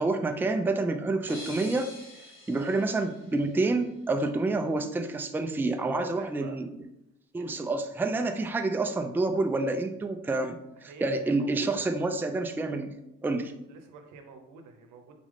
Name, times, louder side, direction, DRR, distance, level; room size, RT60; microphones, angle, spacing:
voice 1, 0.0-1.9 2.5-6.8 7.3-12.9 13.2-13.5, right 2 dB, 5° right, 6 dB, 0.4 m, -28 dB
sound 1, 1.3-4.0, left 2 dB, 40° left, 1.5 m, -46 dB
voice 2, 5.8-6.6 7.4-7.6 10.8-11.8 13.7-15.1, right 5 dB, 90° right, 5 dB, 0.8 m, -46 dB
4.1 x 3.4 x 3.7 m, 0.85 s
cardioid pair, 90°, 30 cm